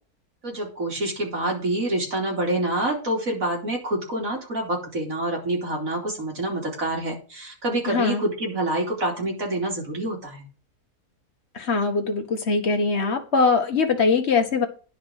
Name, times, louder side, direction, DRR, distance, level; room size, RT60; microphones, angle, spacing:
voice 1, 0.4-10.5, right 1 dB, 60° right, 3.6 m, -27 dB
voice 2, 7.9-8.2 11.5-14.7, left 4 dB, 45° left, 1.7 m, -22 dB
10.5 x 5.2 x 6.4 m
omnidirectional pair, 1.7 m